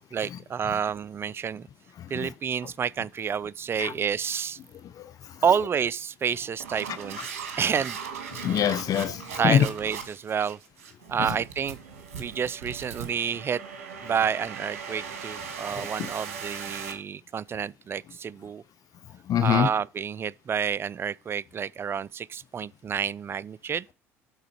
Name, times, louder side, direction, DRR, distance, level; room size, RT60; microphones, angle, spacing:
voice 1, 0.0-1.7 2.1-4.6 5.4-8.0 9.4-10.6 11.1-11.8 12.2-13.6 14.0-18.6 19.4-23.9, right 7 dB, 30° right, 0.3 m, -29 dB
voice 2, 2.0-2.3 3.8-3.9 5.0-5.1 8.3-9.6 15.8-15.9 19.3-19.7, left 10 dB, 50° left, 0.6 m, -24 dB
sound 1, 3.2-3.4 3.7-4.0 4.4-4.8 5.3-5.6 6.2-16.9, right 6 dB, 85° right, 1.4 m, -39 dB
11.5 x 3.8 x 4.5 m
hypercardioid pair, 65°, 8 cm